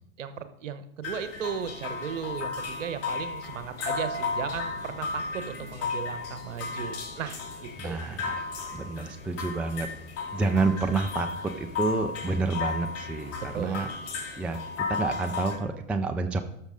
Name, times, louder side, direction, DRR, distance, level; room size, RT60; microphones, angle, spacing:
voice 1, 0.2-8.0 13.5-13.9, right 7 dB, 70° right, 11 dB, 1.1 m, -36 dB
sound 1, 1.0-15.6, left 4 dB, 35° left, 2.4 m, -34 dB
voice 2, 7.8-8.4 8.7-9.9 10.3-13.9 14.4-14.6 14.9-16.4, right 3 dB, 5° right, 7 dB, 0.3 m, -29 dB
13.0 x 6.4 x 3.8 m, 0.76 s
figure-of-eight pair, 95°, 39 cm